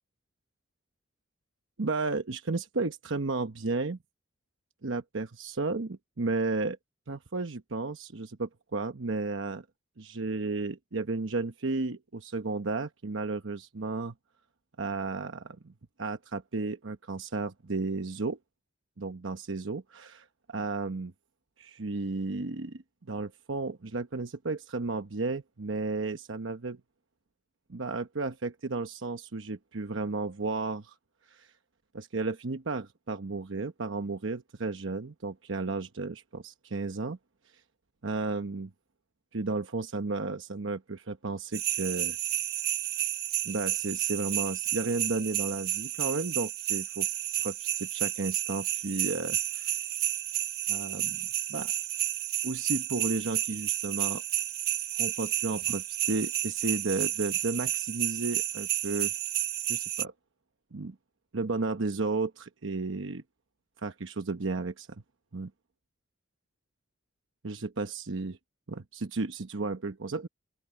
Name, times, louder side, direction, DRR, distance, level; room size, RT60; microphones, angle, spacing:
voice 1, 1.8-4.0 4.8-6.8 7.1-9.6 10.0-14.1 14.8-15.7 16.0-18.4 19.0-21.1 21.6-22.8 23.1-26.8 27.7-30.9 31.3-31.5 31.9-37.2 38.0-38.7 39.3-42.2 43.4-47.1 47.4-49.8 50.7-51.7 52.4-54.2 55.0-59.1 59.7-60.1 60.7-61.0 61.3-63.2 63.8-64.9 65.3-65.5 67.4-68.4 68.7-70.3, right 3 dB, 85° right, 1.0 m, -33 dB
sound 1, 41.5-60.0, right 12 dB, 50° right, 1.2 m, -31 dB
open air
head